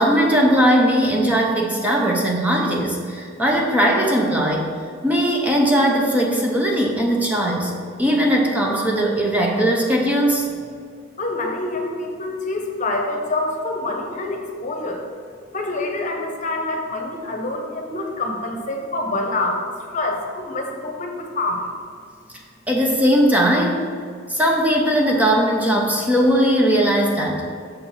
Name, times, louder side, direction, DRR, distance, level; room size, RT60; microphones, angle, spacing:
voice 1, 0.0-4.7 5.0-7.7 8.0-10.5 22.7-23.9 24.3-27.4, equal, 10° right, -1 dB, 0.7 m, -19 dB
voice 2, 11.2-15.0 15.5-19.6 19.9-21.6, left 2 dB, 40° left, 2 dB, 1.0 m, -26 dB
6.5 x 4.5 x 5.5 m, 2.2 s
head